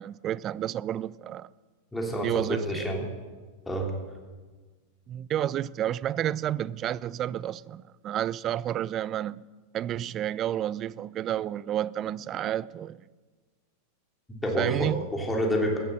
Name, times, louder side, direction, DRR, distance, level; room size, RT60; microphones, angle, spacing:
voice 1, 0.0-1.5 2.2-2.9 5.1-9.4 9.7-13.0 14.6-15.1, right 11 dB, 30° right, 0.3 m, -30 dB
voice 2, 1.9-3.0 3.7-3.9 14.4-15.8, equal, 10° left, 3.2 m, -28 dB
14.5 x 10.5 x 6.5 m
figure-of-eight pair, 90°, 0 cm